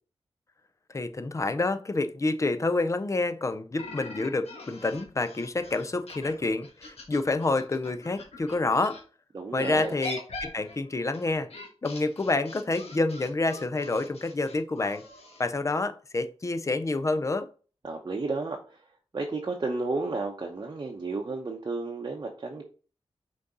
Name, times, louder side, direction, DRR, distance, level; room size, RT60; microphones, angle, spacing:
voice 1, 0.9-9.0 9.5-11.5 11.8-15.0 15.4-17.5, left 2 dB, 30° left, 0.5 m, -28 dB
sound 1, 3.8-9.0 9.6-15.4, left 2 dB, 70° left, 1.3 m, -43 dB
voice 2, 9.3-10.0 17.8-18.6 19.1-22.6, right 3 dB, 40° right, 0.8 m, -32 dB
6.2 x 3.9 x 4.0 m
wide cardioid pair, 115°, 11 cm